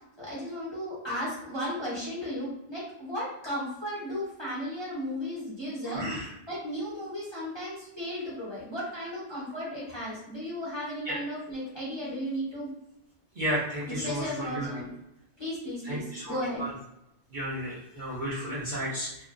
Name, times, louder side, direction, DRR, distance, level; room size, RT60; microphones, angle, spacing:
voice 1, 0.2-6.0 6.5-12.7 13.9-14.9 15.4-16.6, equal, 25° left, -9 dB, 1.1 m, -35 dB
voice 2, 5.8-6.3 11.0-11.2 13.4-14.7 15.8-16.7 17.3-19.2, right 1 dB, 45° right, -8 dB, 0.8 m, -33 dB
2.8 x 2.6 x 2.5 m, 0.84 s
omnidirectional pair, 1.3 m